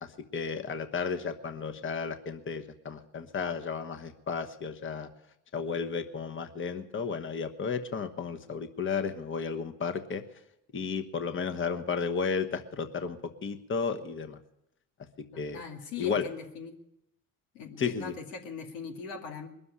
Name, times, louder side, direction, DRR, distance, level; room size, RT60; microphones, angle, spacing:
voice 1, 0.0-5.1 5.5-10.2 10.7-14.4 15.4-15.6 16.0-16.3 17.8-18.1, left 5 dB, 35° left, 7 dB, 1.2 m, -33 dB
voice 2, 15.3-16.8 17.5-19.5, left 5 dB, 90° left, 3 dB, 2.3 m, -41 dB
21.0 x 7.0 x 9.9 m, 0.83 s
supercardioid pair, 75°, 37 cm